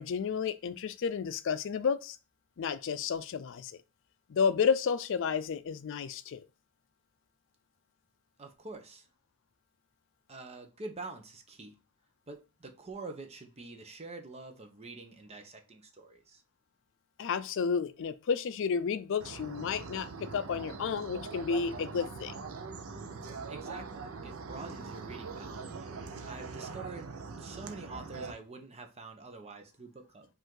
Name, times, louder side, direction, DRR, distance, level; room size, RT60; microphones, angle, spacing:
voice 1, 0.0-2.2 2.6-3.8 4.3-6.4 17.2-22.3, left 6 dB, 60° left, 0.4 m, -31 dB
voice 2, 8.4-9.1 10.3-11.7 12.3-16.4 23.5-25.6 26.2-27.1 27.4-30.3, right 3 dB, 30° right, 0.8 m, -46 dB
sound 1, 19.2-28.3, right 4 dB, 70° right, 0.6 m, -42 dB
5.3 x 2.6 x 3.7 m
head